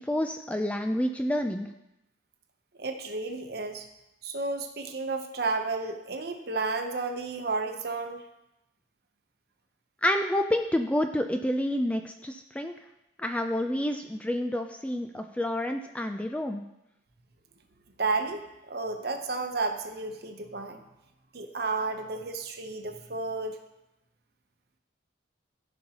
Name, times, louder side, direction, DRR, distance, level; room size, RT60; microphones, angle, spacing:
voice 1, 0.0-1.7 10.0-12.7 13.2-16.6, left 1 dB, 5° left, 5 dB, 0.3 m, -29 dB
voice 2, 2.8-3.9 4.2-8.2 18.0-20.8 21.3-23.6, right 3 dB, 55° right, 5 dB, 0.8 m, -32 dB
14.5 x 5.4 x 2.9 m, 0.90 s
head